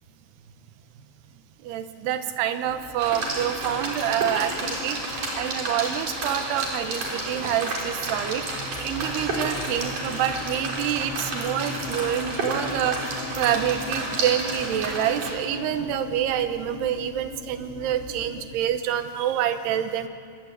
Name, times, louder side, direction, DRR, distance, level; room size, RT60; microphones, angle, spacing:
voice 1, 1.6-20.1, right 10 dB, 70° right, 9 dB, 2.9 m, -27 dB
sound 1, 2.7-18.6, left 4 dB, 75° left, 4.2 m, -40 dB
sound 2, 3.0-15.3, right 2 dB, 45° right, 5.1 m, -31 dB
28.0 x 20.5 x 8.3 m, 2.2 s
omnidirectional pair, 5.6 m